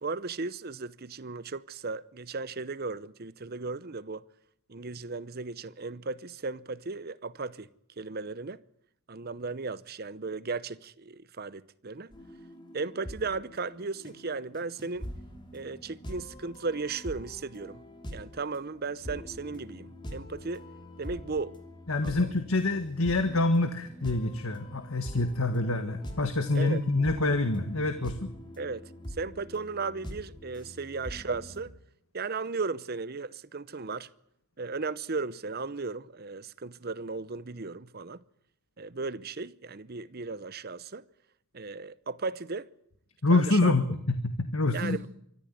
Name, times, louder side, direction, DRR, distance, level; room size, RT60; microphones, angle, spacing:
voice 1, 0.0-4.3 4.7-7.7 8.0-8.6 9.1-12.1 12.7-15.1 15.5-17.8 18.1-20.6 21.0-21.5 22.0-22.3 26.5-26.8 28.6-31.7 32.1-34.1 34.6-38.2 38.8-41.0 41.5-42.7 43.3-43.7 44.7-45.1, right 4 dB, 45° right, 0.8 m, -36 dB
sound 1, 12.1-31.7, equal, 20° left, 3.1 m, -44 dB
voice 2, 21.9-28.3 43.2-45.1, left 2 dB, 75° left, 1.7 m, -26 dB
24.5 x 14.0 x 9.6 m
head